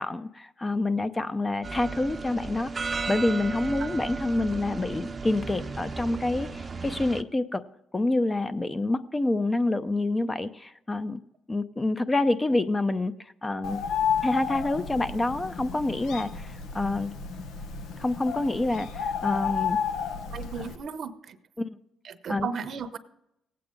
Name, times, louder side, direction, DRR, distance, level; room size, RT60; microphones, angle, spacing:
voice 1, 0.0-7.6 7.9-11.2 11.5-13.1 13.4-13.8 14.2-17.2 18.0-19.8 20.6-20.7 21.6-21.8 22.3-22.5, left 2 dB, 20° left, 11 dB, 0.7 m, -27 dB
sound 1, 1.6-7.2, right 4 dB, 30° right, 0.7 m, -35 dB
Bird, 13.6-20.8, left 7 dB, 85° left, 1.1 m, -32 dB
voice 2, 20.3-21.4 22.0-23.0, right 6 dB, 60° right, 11 dB, 0.8 m, -35 dB
17.5 x 8.5 x 3.8 m, 0.82 s
cardioid pair, 90°, 0 cm